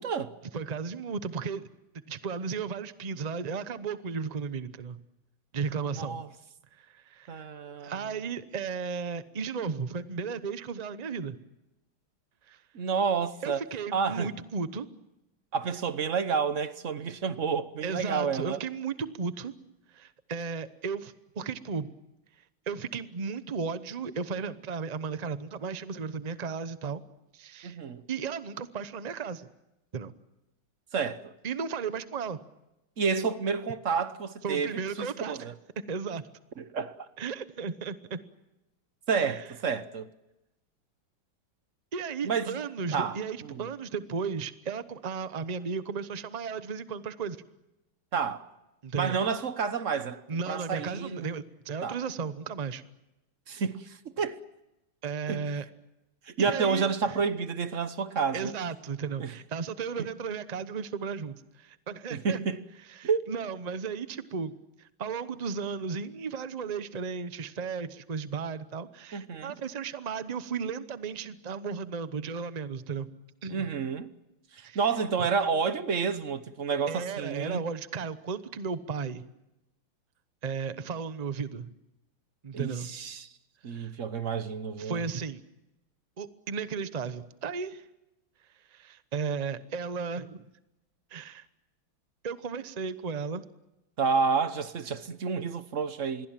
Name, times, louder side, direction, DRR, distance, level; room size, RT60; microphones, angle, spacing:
voice 1, 0.0-0.3 6.0-6.3 7.3-8.0 12.7-13.6 13.9-14.3 15.5-18.6 27.6-28.0 30.9-31.3 33.0-35.5 36.6-36.9 39.1-40.1 42.2-42.6 42.9-43.6 48.1-48.5 48.9-51.3 51.8-52.0 53.5-54.4 55.3-55.5 56.3-58.5 59.2-59.3 60.0-60.1 62.1-62.6 63.0-63.2 69.1-69.5 73.5-74.1 74.7-77.6 82.5-83.3 83.6-85.0 94.0-96.3, right 5 dB, 45° right, 1.1 m, -30 dB
voice 2, 0.5-1.6 2.1-5.0 5.5-6.2 6.7-7.5 7.8-11.4 12.5-12.6 13.4-14.9 17.8-19.5 19.9-21.9 22.7-27.0 27.3-27.8 28.1-29.5 29.9-30.1 31.4-32.4 34.4-35.5 35.9-36.2 37.2-38.2 39.2-39.4 41.9-47.4 48.8-49.2 50.3-52.8 53.5-53.6 55.0-55.6 56.4-57.2 58.3-62.4 62.9-64.5 64.8-73.1 73.4-73.7 74.6-74.8 76.9-79.2 80.4-81.7 82.4-82.9 83.7-83.9 84.8-85.4 86.2-87.8 88.7-90.4 91.1-91.5 92.2-93.4, right 5 dB, 75° right, 0.3 m, -35 dB
27.0 x 22.0 x 7.4 m
omnidirectional pair, 2.2 m